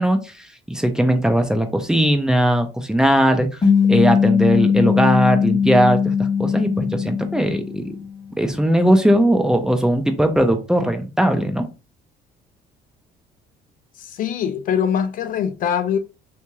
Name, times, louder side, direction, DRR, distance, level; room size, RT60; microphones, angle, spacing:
voice 1, 0.0-3.5 3.9-7.8 8.4-11.7, right 1 dB, 5° right, 0.5 m, -19 dB
sound 1, 3.6-8.3, left 6 dB, 25° left, 1.1 m, -19 dB
voice 2, 14.0-16.0, left 8 dB, 55° left, 0.4 m, -23 dB
2.9 x 2.8 x 2.2 m
cardioid pair, 110°, 17 cm